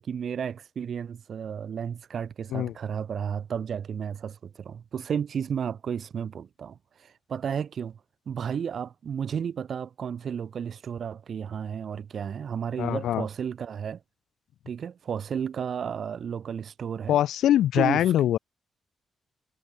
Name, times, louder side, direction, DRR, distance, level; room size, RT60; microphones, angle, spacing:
voice 1, 0.0-8.0 8.3-14.0 14.7-17.2 17.7-18.1, right 7 dB, 65° right, 4.6 m, -33 dB
voice 2, 12.8-13.3 17.1-18.4, left 12 dB, 85° left, 0.5 m, -23 dB
supercardioid pair, 60°, 0 cm